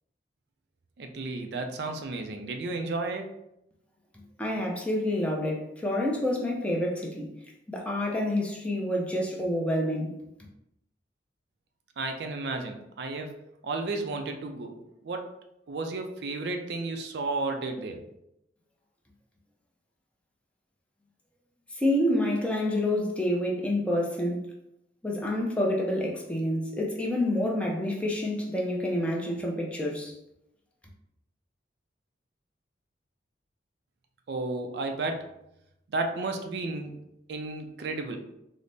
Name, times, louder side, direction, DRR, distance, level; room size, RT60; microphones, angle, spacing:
voice 1, 1.0-3.3 12.0-14.8 15.0-15.3 15.7-18.0 34.3-35.3 35.9-37.0 37.3-38.2, right 3 dB, 60° right, 5 dB, 0.4 m, -33 dB
voice 2, 4.4-7.3 7.7-10.2 21.7-24.5 25.0-30.1, left 1 dB, 5° left, -2 dB, 0.5 m, -28 dB
3.9 x 2.0 x 3.3 m, 0.83 s
head